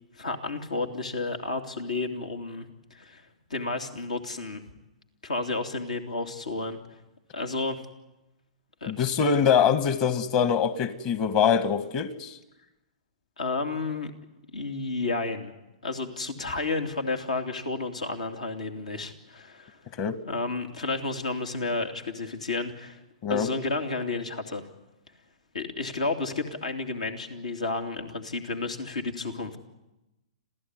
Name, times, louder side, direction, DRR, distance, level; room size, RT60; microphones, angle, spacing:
voice 1, 0.2-3.2 3.5-4.6 5.2-6.8 7.3-7.8 8.8-9.1 13.4-14.1 14.5-15.5 15.8-19.8 20.2-23.0 23.3-24.6 25.5-29.6, left 3 dB, 85° left, 4 dB, 2.9 m, -31 dB
voice 2, 8.9-12.4 20.0-20.2 23.2-23.5, left 7 dB, 45° left, 11 dB, 1.9 m, -24 dB
27.0 x 16.0 x 9.8 m, 0.99 s
hypercardioid pair, 115°, 4 cm